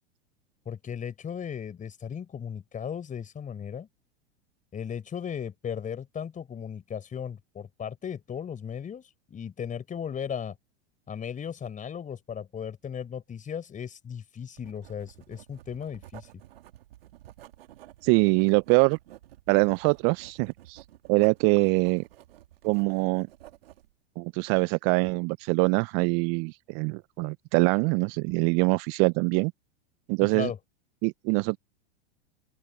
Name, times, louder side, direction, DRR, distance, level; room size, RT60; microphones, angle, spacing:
voice 1, 0.6-3.9 4.7-10.6 11.1-16.3 30.2-30.6, left 7 dB, 25° left, 4.9 m, -36 dB
Writing, 14.6-23.9, right 14 dB, 65° right, 3.2 m, -51 dB
voice 2, 18.0-19.0 19.5-20.8 21.1-22.0 22.6-23.3 24.2-29.5 30.1-30.5 31.0-31.6, right 32 dB, 45° right, 0.9 m, -24 dB
open air
figure-of-eight pair, 90°, 32 cm